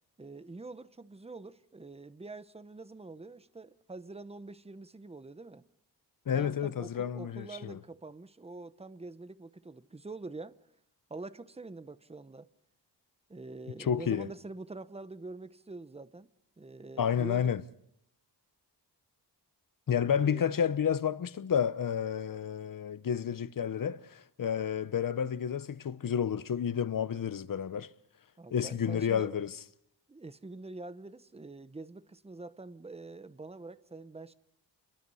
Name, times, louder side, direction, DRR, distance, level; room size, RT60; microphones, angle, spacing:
voice 1, 0.2-5.6 6.3-10.6 11.1-12.5 13.3-16.3 16.6-17.5 20.2-20.6 28.4-29.4 30.1-34.3, right 3 dB, 15° right, 0.8 m, -45 dB
voice 2, 6.3-7.8 13.8-14.3 17.0-17.6 19.9-27.9 28.5-29.5, left 8 dB, 50° left, 0.9 m, -30 dB
29.5 x 22.5 x 5.6 m
wide cardioid pair, 115°, 41 cm